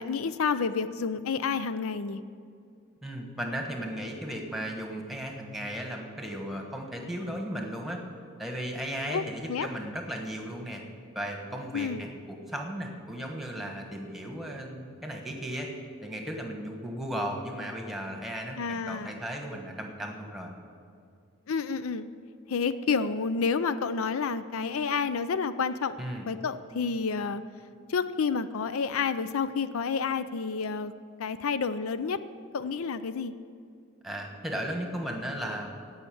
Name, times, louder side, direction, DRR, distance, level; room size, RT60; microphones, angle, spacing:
voice 1, 0.0-2.2 9.1-9.7 11.7-12.0 18.6-19.2 21.5-22.1 22.5-26.0 26.3-27.4 27.9-30.9 31.2-32.2 32.5-33.3, left 5 dB, 85° left, 13 dB, 0.5 m, -29 dB
voice 2, 3.0-8.0 8.4-10.8 11.1-15.7 16.0-20.5 26.0-26.3 34.0-35.7, equal, ahead, 2 dB, 1.3 m, -36 dB
16.5 x 5.7 x 8.6 m, 2.4 s
head